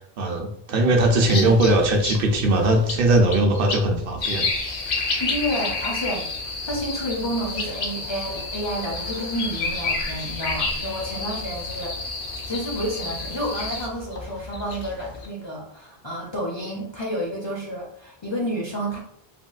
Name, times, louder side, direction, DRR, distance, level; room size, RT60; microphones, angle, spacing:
voice 1, 0.2-4.5, right 1 dB, 65° right, 2 dB, 0.7 m, -20 dB
sound 1, 1.0-15.3, left 3 dB, 70° left, 0.8 m, -35 dB
sound 2, 4.2-13.9, left 3 dB, 90° left, 1.0 m, -30 dB
voice 2, 4.9-6.3 6.7-12.0 12.4-19.0, equal, 40° left, -4 dB, 0.4 m, -30 dB
3.5 x 2.2 x 2.3 m, 0.67 s
omnidirectional pair, 1.0 m